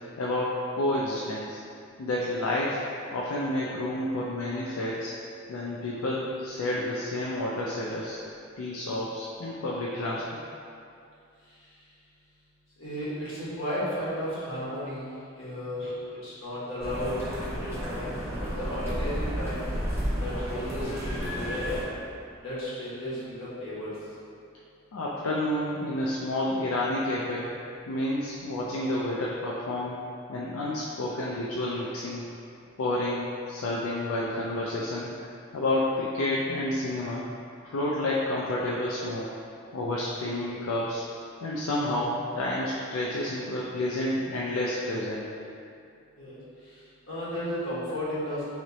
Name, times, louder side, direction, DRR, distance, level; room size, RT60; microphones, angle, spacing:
voice 1, 0.2-1.6 2.0-2.8 3.1-5.1 5.5-8.2 8.6-10.4 24.9-27.5 27.9-30.0 30.3-32.2 32.8-35.1 35.5-37.2 37.6-39.4 39.7-41.0 41.4-45.3, left 1 dB, 90° left, -5 dB, 0.4 m, -30 dB
voice 2, 12.8-15.1 15.3-16.0 16.2-19.6 20.2-22.0 22.4-23.9 46.2-46.4 46.6-46.8 47.1-48.4, equal, 70° left, -10 dB, 1.3 m, -34 dB
sound 1, 16.8-21.8, equal, 15° right, 0.6 m, -32 dB
3.1 x 2.9 x 3.9 m, 2.5 s
head